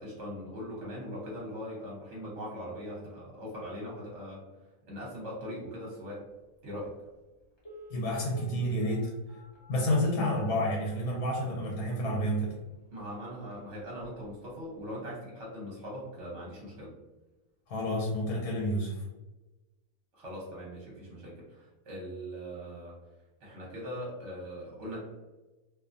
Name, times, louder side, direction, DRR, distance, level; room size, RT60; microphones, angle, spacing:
voice 1, 0.0-4.4 4.9-6.2 6.6-6.9 12.9-16.9 20.1-23.0 23.4-25.0, equal, 55° right, -5 dB, 1.0 m, -41 dB
Telephone, 6.8-6.9 7.6-12.4 13.0-13.1 13.4-13.6 14.0-14.3 14.6-14.7, right 1 dB, 25° left, 0.6 m, -52 dB
voice 2, 7.9-9.2 9.7-12.5 17.7-19.1, equal, 85° left, -3 dB, 1.1 m, -29 dB
2.6 x 2.1 x 2.4 m, 1.1 s
omnidirectional pair, 1.6 m